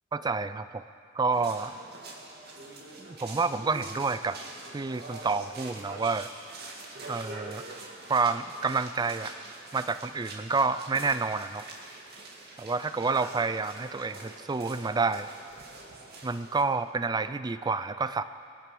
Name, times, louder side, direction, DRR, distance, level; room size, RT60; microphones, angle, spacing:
voice 1, 0.1-0.9 1.1-1.7 3.0-4.4 4.7-6.3 7.1-7.6 8.1-9.3 9.7-11.7 12.6-15.3 16.2-18.2, right 4 dB, 20° right, 12 dB, 0.3 m, -29 dB
sound 1, 1.3-16.6, right 2 dB, 50° right, 2.1 m, -45 dB
22.0 x 10.0 x 6.1 m, 2.5 s
head